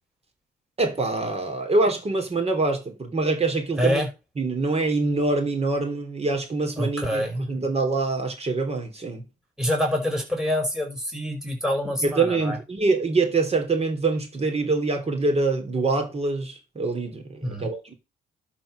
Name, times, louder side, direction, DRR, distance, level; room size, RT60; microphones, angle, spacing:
voice 1, 0.8-4.0 4.4-9.2 12.0-17.9, right 3 dB, 30° right, 3.4 m, -25 dB
voice 2, 3.8-4.1 6.8-7.5 9.6-12.6 17.4-17.7, equal, 5° right, 5.5 m, -26 dB
11.5 x 4.7 x 6.3 m
cardioid pair, 90°, 20 cm